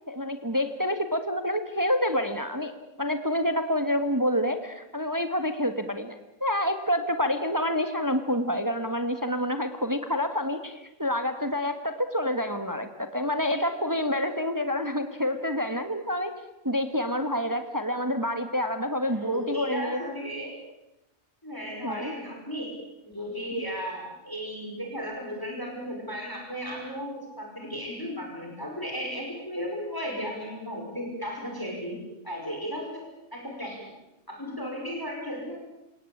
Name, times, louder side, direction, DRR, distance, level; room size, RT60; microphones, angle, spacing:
voice 1, 0.1-2.7 3.0-16.3 16.6-20.0 21.8-22.1, left 1 dB, 15° right, 8 dB, 1.7 m, -28 dB
voice 2, 19.1-20.5 21.4-22.8 23.1-33.0 33.3-33.9 34.3-35.6, equal, 15° left, 0 dB, 5.7 m, -35 dB
29.0 x 18.0 x 8.8 m, 0.94 s
omnidirectional pair, 1.4 m